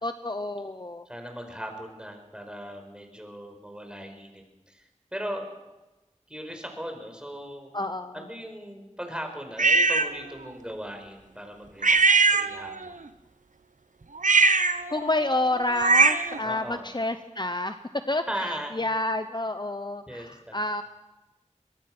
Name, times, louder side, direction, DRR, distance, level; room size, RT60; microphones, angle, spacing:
voice 1, 0.0-1.1 7.7-8.3 14.9-17.8 18.1-20.8, left 2 dB, 35° left, 9 dB, 0.9 m, -29 dB
voice 2, 1.0-5.5 6.3-7.7 8.1-13.0 16.4-16.9 18.3-18.7 20.1-20.6, equal, 5° right, 4 dB, 4.9 m, -38 dB
sound 1, 9.6-10.1 11.8-12.9 14.2-16.4, right 4 dB, 85° right, 1.0 m, -21 dB
24.5 x 21.0 x 6.1 m, 1.1 s
wide cardioid pair, 45°, 13 cm